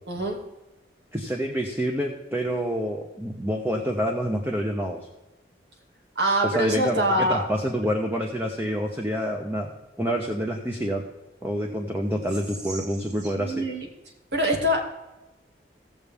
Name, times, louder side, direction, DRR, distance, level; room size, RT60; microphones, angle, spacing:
voice 1, 0.1-0.4 6.2-7.4 8.6-8.7 12.7-12.8 13.4-13.9 14.3-14.8, equal, 75° right, 1 dB, 2.3 m, -24 dB
voice 2, 1.1-5.0 6.4-9.7 10.0-11.0 11.4-13.7, equal, 15° right, 2 dB, 0.9 m, -27 dB
17.0 x 7.1 x 3.5 m, 1.0 s
head